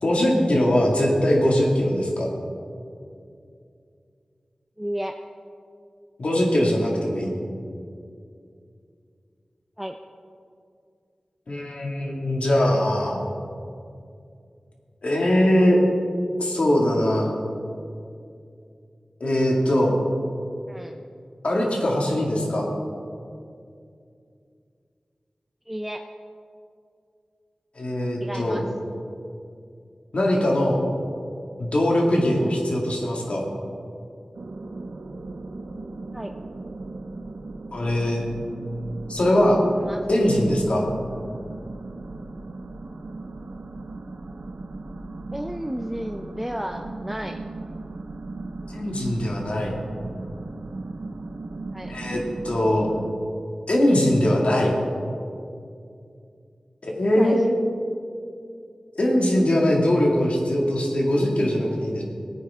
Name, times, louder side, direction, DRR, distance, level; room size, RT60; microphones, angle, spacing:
voice 1, 0.0-2.3 6.2-7.4 11.5-13.2 15.0-15.8 16.4-17.3 19.2-19.9 21.4-22.7 27.8-28.6 30.1-30.8 31.6-33.4 37.7-38.2 39.1-39.6 40.1-40.8 48.7-49.7 51.9-52.9 53.7-54.7 56.8-57.5 59.0-62.0, left 1 dB, 70° left, -2 dB, 2.3 m, -21 dB
voice 2, 4.8-5.1 9.8-10.0 20.7-21.0 25.7-26.0 28.2-28.6 36.1-36.3 39.8-40.1 45.3-47.4 51.7-52.0 57.1-57.5, equal, 5° right, 4 dB, 0.6 m, -32 dB
sound 1, 34.3-53.1, right 2 dB, 85° right, 0.7 m, -37 dB
18.0 x 9.3 x 3.7 m, 2.4 s
wide cardioid pair, 50°, 2 cm